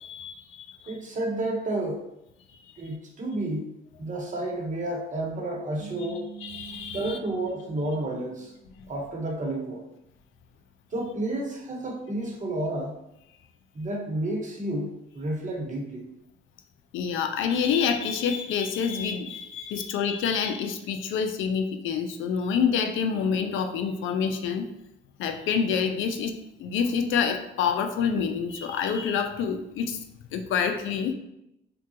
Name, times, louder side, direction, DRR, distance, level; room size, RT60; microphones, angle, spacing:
voice 1, 0.0-0.9 6.4-7.2 16.9-24.7 25.2-30.0 30.3-31.1, left 6 dB, 80° left, 6 dB, 0.4 m, -27 dB
voice 2, 0.9-2.0 2.8-3.7 4.0-6.3 6.9-8.5 8.9-9.8 10.9-12.9 13.7-14.9 15.1-16.1, right 1 dB, 40° right, -1 dB, 1.0 m, -31 dB
sound 1, 5.8-9.1, right 9 dB, 60° right, 0.6 m, -46 dB
3.6 x 2.2 x 2.8 m, 0.86 s
cardioid pair, 90°, 20 cm